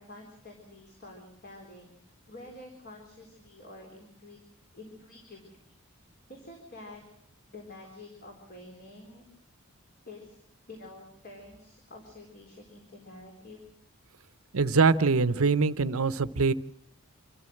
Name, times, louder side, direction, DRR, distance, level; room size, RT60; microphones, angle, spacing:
voice 1, 0.0-4.4 4.7-5.7 6.3-7.0 7.5-9.2 10.0-10.4 10.7-13.6, left 2 dB, 45° left, 1 dB, 4.1 m, -48 dB
voice 2, 14.5-16.5, right 4 dB, 70° right, 14 dB, 0.8 m, -23 dB
26.5 x 14.0 x 7.8 m, 0.70 s
head